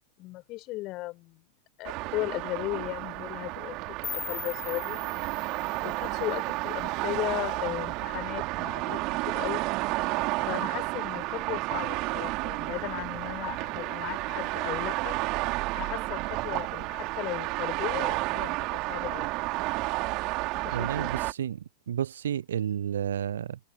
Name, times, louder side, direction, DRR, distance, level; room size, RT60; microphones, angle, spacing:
voice 1, 0.2-1.4 1.8-5.0 5.8-9.6 10.5-15.2 15.7-19.3 20.6-21.1, left 19 dB, 40° left, 4.5 m, -36 dB
sound 1, 1.8-21.3, right 23 dB, 40° right, 2.8 m, -31 dB
sound 2, 4.0-7.0, left 7 dB, 20° left, 1.2 m, -41 dB
voice 2, 20.7-21.6 21.9-23.6, right 9 dB, 65° right, 0.5 m, -31 dB
figure-of-eight pair, 90°, 0 cm